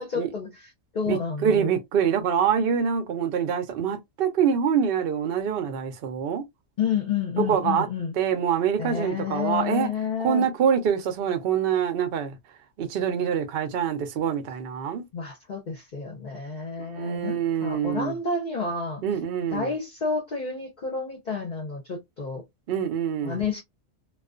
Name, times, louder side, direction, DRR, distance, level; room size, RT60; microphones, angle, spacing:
voice 1, 0.0-1.7 6.8-8.2 8.8-10.5 15.1-19.0 19.5-22.4 23.2-23.6, left 5 dB, 45° left, 0.7 m, -30 dB
voice 2, 1.1-6.4 7.5-7.9 8.2-9.9 10.2-12.3 12.8-15.1 16.8-18.1 19.0-19.7 22.7-23.4, right 7 dB, 55° right, 0.7 m, -25 dB
2.3 x 2.3 x 2.4 m
omnidirectional pair, 1.4 m